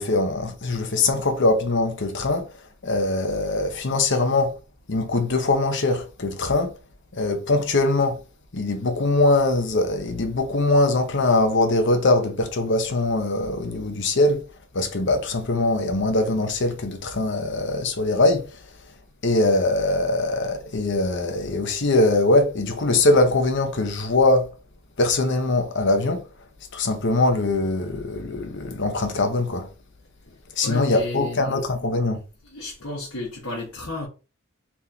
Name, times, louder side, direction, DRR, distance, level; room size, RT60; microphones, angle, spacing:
voice 1, 0.0-2.5 2.8-4.5 4.9-6.7 7.1-8.2 8.5-14.4 14.7-18.6 19.2-24.5 25.0-26.2 26.7-29.7 30.6-32.2, left 2 dB, 60° left, 0.9 m, -22 dB
voice 2, 30.6-31.5 32.4-34.1, left 2 dB, 75° left, 1.6 m, -32 dB
4.3 x 3.6 x 2.9 m
head